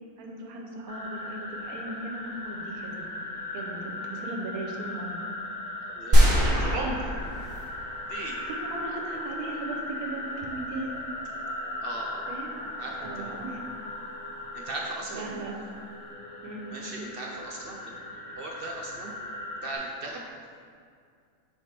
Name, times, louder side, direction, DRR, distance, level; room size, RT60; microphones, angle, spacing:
voice 1, 0.2-2.9 3.5-5.2 8.1-11.0 12.3-12.5 13.0-13.6 15.1-15.5 16.4-16.8, right 2 dB, 85° right, 0 dB, 1.2 m, -37 dB
sound 1, 0.9-19.8, left 1 dB, 30° left, 0.8 m, -38 dB
voice 2, 6.0-7.0 8.1-8.4 11.8-12.3 12.8-13.3 14.5-15.4 16.7-19.1 19.6-20.2, right 2 dB, 60° right, -1 dB, 0.6 m, -37 dB
sound 2, 6.1-8.1 8.4-8.5, equal, 40° right, 1.2 m, -22 dB
5.7 x 5.1 x 3.2 m, 2.2 s
omnidirectional pair, 1.5 m